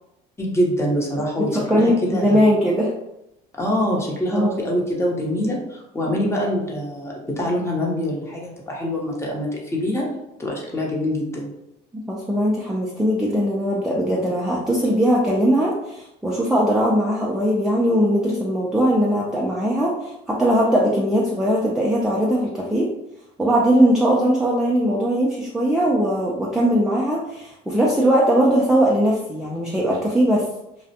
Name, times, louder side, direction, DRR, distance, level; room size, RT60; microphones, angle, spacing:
voice 1, 0.4-2.4 3.6-10.1 10.4-11.5, equal, 15° left, -2 dB, 0.8 m, -24 dB
voice 2, 1.5-2.9 4.3-4.6 12.1-22.9 23.4-30.5, equal, 5° right, -4 dB, 0.4 m, -20 dB
2.4 x 2.1 x 2.7 m, 0.86 s
supercardioid pair, 90°, 19 cm